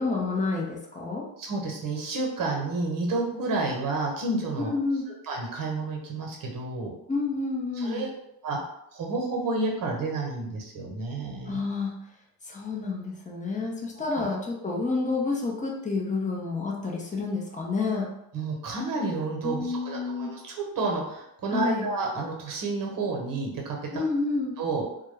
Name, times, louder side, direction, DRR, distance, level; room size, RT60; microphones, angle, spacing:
voice 1, 0.0-1.3 4.6-5.0 7.1-8.1 11.5-12.0 12.5-18.1 19.4-20.3 21.5-21.9 23.9-24.5, left 3 dB, 15° left, 0 dB, 0.6 m, -29 dB
voice 2, 1.4-4.7 5.3-6.9 7.8-8.1 8.4-8.6 8.9-11.6 14.1-14.2 18.3-24.0 24.6-24.9, right 3 dB, 40° right, 0 dB, 1.0 m, -30 dB
2.2 x 2.2 x 3.2 m, 0.80 s
hypercardioid pair, 65°, 49 cm